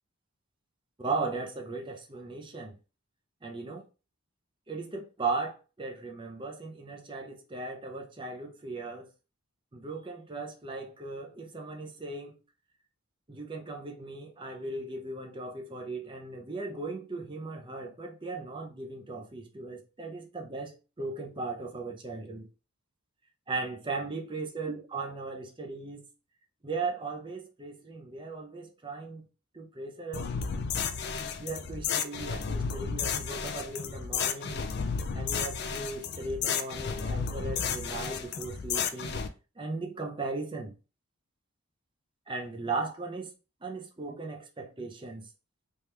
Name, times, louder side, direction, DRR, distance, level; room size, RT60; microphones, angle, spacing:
voice 1, 1.0-2.8 3.4-3.8 4.7-9.1 9.7-12.4 13.3-22.5 23.5-26.0 26.6-29.2 29.5-30.3 31.4-34.7 35.1-39.2 39.6-40.7 42.3-43.3 43.6-45.3, right 3 dB, 20° right, 0.6 m, -37 dB
sound 1, 30.1-39.3, left 6 dB, 50° left, 0.4 m, -32 dB
3.5 x 2.9 x 3.2 m
head